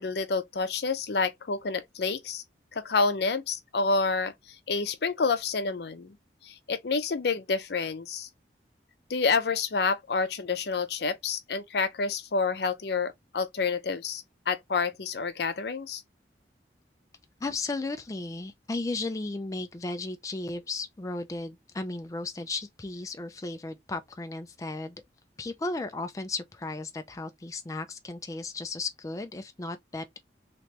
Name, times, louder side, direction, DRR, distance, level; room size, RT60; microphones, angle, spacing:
voice 1, 0.0-2.4 2.7-4.3 4.7-6.2 6.4-8.3 9.1-16.0, left 4 dB, 70° left, 0.6 m, -28 dB
voice 2, 17.4-25.0 25.4-30.2, left 3 dB, 20° left, 0.3 m, -35 dB
3.2 x 2.9 x 2.8 m
head